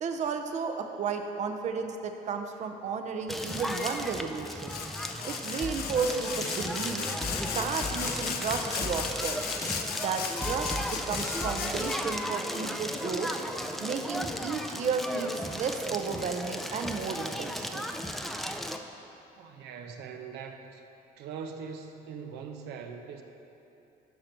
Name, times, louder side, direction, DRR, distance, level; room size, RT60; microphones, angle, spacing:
voice 1, 0.0-4.7 5.2-7.1 7.5-9.4 10.0-13.3 13.8-17.9, right 5 dB, 45° right, 5 dB, 0.6 m, -33 dB
Crackle, 3.3-18.8, equal, ahead, 0.4 m, -35 dB
Sawing, 3.4-4.0 4.5-12.2, left 7 dB, 65° left, 0.7 m, -37 dB
sound 1, 5.6-12.0, left 2 dB, 15° left, 0.9 m, -38 dB
voice 2, 19.3-20.8 21.2-23.2, right 6 dB, 85° right, 5 dB, 0.7 m, -41 dB
10.5 x 5.8 x 4.4 m, 2.9 s
cardioid pair, 110°, 17 cm